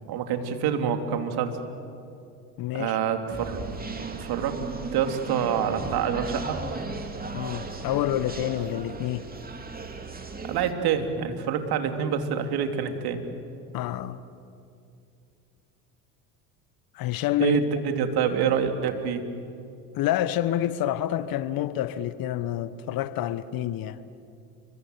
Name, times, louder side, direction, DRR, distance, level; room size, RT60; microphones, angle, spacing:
voice 1, 0.1-1.6 2.7-3.6 4.2-4.6 4.9-6.6 10.4-13.2 17.4-19.2, right 7 dB, 55° right, 3.2 m, -26 dB
voice 2, 2.6-3.0 7.3-9.2 13.7-14.2 16.9-17.6 19.9-24.0, left 12 dB, 50° left, 1.2 m, -28 dB
sound 1, 3.3-10.7, right 3 dB, 20° right, 3.0 m, -36 dB
30.0 x 24.5 x 8.0 m
hypercardioid pair, 70°, 44 cm